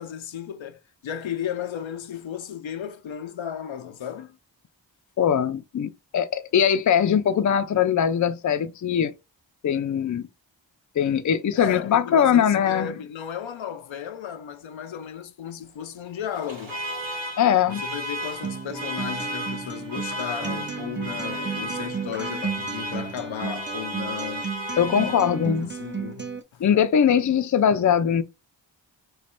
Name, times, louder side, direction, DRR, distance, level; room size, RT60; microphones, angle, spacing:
voice 1, 0.0-4.4 11.5-16.8 17.7-24.5 25.0-26.6, left 9 dB, 90° left, 0.6 m, -34 dB
voice 2, 5.2-9.1 9.6-10.3 11.0-12.9 17.4-17.8 24.8-25.7 26.6-28.2, left 8 dB, 45° left, 0.4 m, -21 dB
Alarm, 16.3-25.7, equal, 90° right, 1.3 m, -34 dB
Acoustic guitar, 18.4-26.4, right 6 dB, 25° right, 0.6 m, -34 dB
3.1 x 2.3 x 4.3 m
wide cardioid pair, 65°, 45 cm